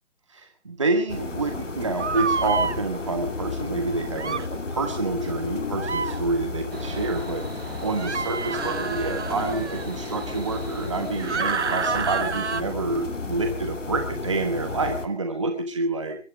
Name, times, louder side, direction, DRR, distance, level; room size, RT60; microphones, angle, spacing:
voice 1, 0.3-16.2, right 3 dB, 25° right, 6 dB, 1.4 m, -28 dB
sound 1, 1.1-15.1, left 3 dB, 90° left, 2.9 m, -33 dB
sound 2, 2.0-2.8 4.2-4.5 5.8-6.2 8.0-9.8 11.2-12.6, right 5 dB, 70° right, 1.2 m, -28 dB
sound 3, 6.7-11.8, right 3 dB, 55° right, 3.2 m, -40 dB
23.0 x 12.0 x 5.1 m, 0.39 s
figure-of-eight pair, 175°, 36 cm